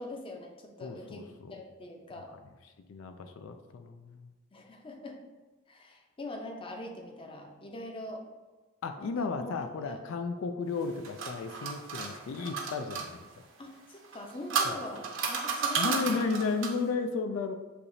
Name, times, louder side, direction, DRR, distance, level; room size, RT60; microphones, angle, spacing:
voice 1, 0.0-2.3 4.5-5.2 5.7-8.2 9.0-10.0 13.6-16.2, left 1 dB, 25° left, 2 dB, 0.6 m, -43 dB
voice 2, 0.8-1.6 2.9-4.3 8.8-13.4 14.6-14.8 15.8-17.5, left 4 dB, 85° left, 7 dB, 0.4 m, -34 dB
sound 1, 10.8-13.1 14.0-16.9, right 5 dB, 75° right, 0.7 m, -33 dB
6.6 x 2.9 x 2.6 m, 1.2 s
head